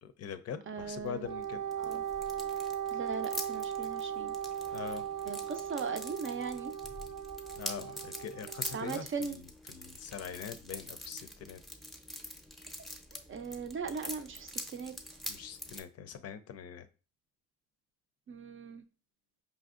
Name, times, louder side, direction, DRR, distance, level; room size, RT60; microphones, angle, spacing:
voice 1, 0.0-1.6 4.7-5.1 7.6-11.6 15.3-16.9, left 7 dB, 55° left, 0.5 m, -43 dB
voice 2, 0.7-1.3 1.8-2.0 2.9-4.3 5.3-6.7 8.7-9.4 13.1-14.9 18.3-18.8, right 5 dB, 45° right, 0.5 m, -39 dB
sound 1, 0.8-15.8, equal, ahead, 0.6 m, -45 dB
Wind instrument woodwind instrument, 1.2-9.0, right 9 dB, 85° right, 0.7 m, -38 dB
5.1 x 2.5 x 2.4 m
cardioid pair, 90°, 30 cm